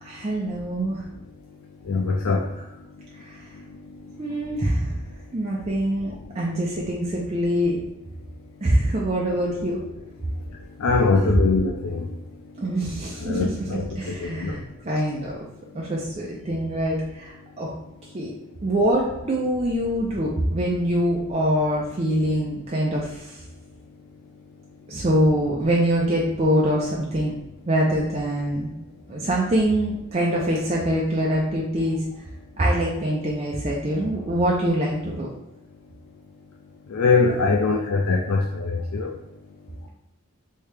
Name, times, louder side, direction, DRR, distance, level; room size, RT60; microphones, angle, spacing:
voice 1, 0.0-1.0 2.6-2.7 3.2-3.4 4.2-4.9 5.3-7.8 8.6-9.8 11.1-11.4 12.6-14.6 14.8-15.4 15.7-17.7 18.1-18.3 18.6-23.4 24.9-27.3 27.7-28.7 29.1-32.0 32.6-35.3 37.3-37.4 38.3-38.5, right 1 dB, 30° right, -4 dB, 0.4 m, -24 dB
voice 2, 1.8-2.5 3.0-3.1 3.5-4.5 10.8-12.3 13.3-14.6 15.7-15.9 36.9-39.2, left 4 dB, 80° left, 0 dB, 0.4 m, -23 dB
3.2 x 2.7 x 3.3 m, 0.91 s
head